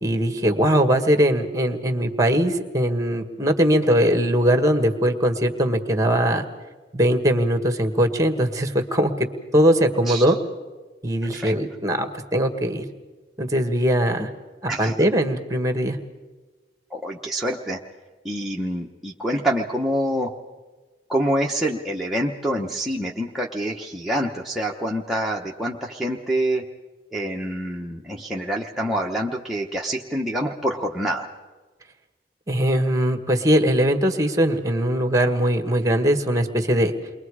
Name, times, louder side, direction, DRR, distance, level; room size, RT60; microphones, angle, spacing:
voice 1, 0.0-6.5 6.9-9.1 9.5-10.4 11.0-12.8 13.4-14.3 14.8-16.0 32.5-36.9, equal, 20° right, 7 dB, 1.7 m, -20 dB
voice 2, 10.1-10.4 11.3-11.5 14.2-14.3 14.7-15.1 16.9-17.8 18.2-20.3 21.1-26.6 27.1-31.3, right 1 dB, ahead, -3 dB, 1.0 m, -26 dB
29.0 x 22.5 x 4.9 m, 1.3 s
head